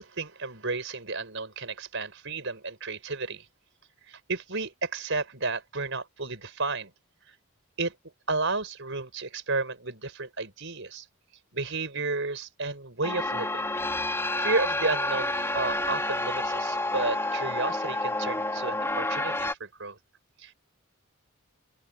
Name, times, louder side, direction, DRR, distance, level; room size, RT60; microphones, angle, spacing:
voice 1, 0.0-3.5 4.1-6.9 7.3-7.4 7.8-7.9 8.3-11.1 11.5-13.6 14.0-20.0 20.4-20.5, right 3 dB, 55° right, 5.8 m, -32 dB
sound 1, 13.0-19.5, left 2 dB, 10° left, 3.6 m, -29 dB
open air
head